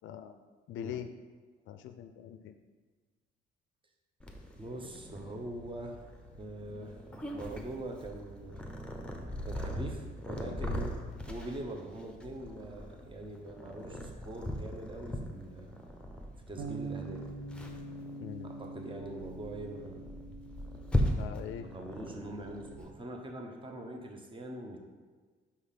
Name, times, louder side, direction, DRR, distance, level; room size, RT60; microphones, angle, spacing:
voice 1, 0.0-0.4 0.7-1.1 1.7-2.5 18.2-18.5 21.2-21.7, left 9 dB, 75° left, 9 dB, 0.4 m, -42 dB
Purr, 4.2-22.9, left 1 dB, 5° left, 0.8 m, -39 dB
voice 2, 4.6-6.0 6.4-7.0 7.3-8.7 9.4-10.9 11.2-15.8 16.5-17.2 18.4-20.0 21.5-24.8, right 1 dB, 25° right, 2 dB, 1.0 m, -43 dB
Bass guitar, 16.6-22.8, right 3 dB, 75° right, 0.6 m, -45 dB
5.6 x 3.3 x 5.7 m, 1.4 s
cardioid pair, 90°, 20 cm